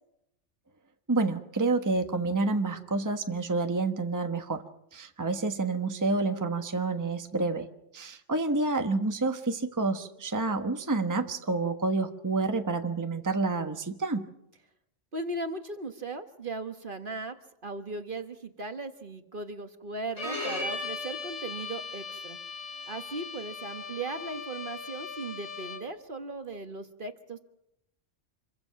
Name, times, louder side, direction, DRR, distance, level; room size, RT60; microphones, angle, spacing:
voice 1, 1.1-4.6 4.9-7.7 7.9-14.3, right 3 dB, 15° right, 6 dB, 1.2 m, -28 dB
voice 2, 15.1-17.4 17.6-22.4 22.9-27.4, right 2 dB, 45° right, 7 dB, 1.5 m, -37 dB
Bowed string instrument, 20.2-26.0, left 3 dB, 65° left, 5.3 m, -38 dB
27.0 x 23.0 x 5.8 m, 0.81 s
omnidirectional pair, 1.3 m